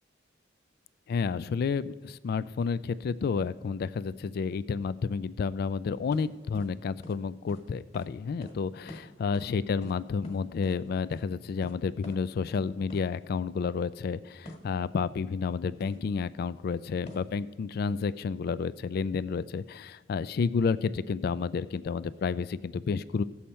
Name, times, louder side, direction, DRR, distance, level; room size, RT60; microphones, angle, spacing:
voice 1, 1.1-23.2, left 5 dB, 50° left, 17 dB, 0.3 m, -30 dB
sound 1, 6.1-6.3 6.5-6.7 7.0-7.2 7.5-7.7 7.9-8.1 8.4-8.6 8.9-9.0 9.3-9.5 9.8-10.8 11.1-11.2 11.6-11.8 12.0-12.2 12.5-12.6 12.9-13.0 14.4-14.7 15.8-16.0 17.1-17.3, left 1 dB, 35° left, 1.6 m, -45 dB
17.0 x 7.1 x 4.3 m, 1.3 s
head